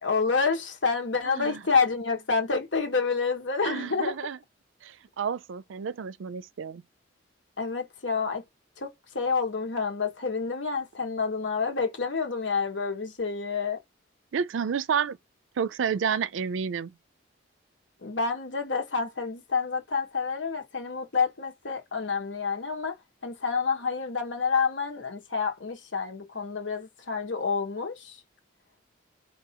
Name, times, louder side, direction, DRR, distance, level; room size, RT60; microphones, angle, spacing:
voice 1, 0.0-4.2 7.6-8.4 8.8-13.8 18.0-23.0 23.2-28.2, left 5 dB, 70° left, 1.3 m, -28 dB
voice 2, 3.6-4.4 4.8-4.9 5.2-6.8 14.3-15.2 15.6-16.9, right 6 dB, 80° right, 0.4 m, -30 dB
4.8 x 2.8 x 2.9 m
head